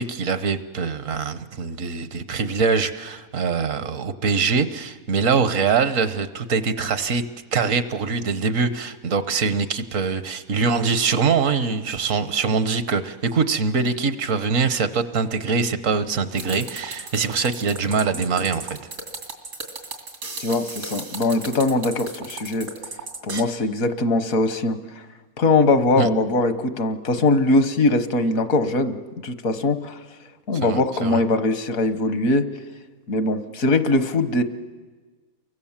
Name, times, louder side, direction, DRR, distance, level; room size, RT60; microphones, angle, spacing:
voice 1, 0.0-7.2 7.5-18.8 26.0-26.1 30.6-31.2, right 5 dB, 65° right, 12 dB, 1.3 m, -23 dB
sound 1, 16.3-23.4, right 3 dB, 85° right, 3.1 m, -35 dB
voice 2, 20.4-22.7 23.2-25.0 25.4-29.0 29.2-30.0 30.5-32.4 33.1-34.4, left 2 dB, 70° left, 11 dB, 1.6 m, -21 dB
29.5 x 23.5 x 7.3 m, 1.4 s
omnidirectional pair, 1.5 m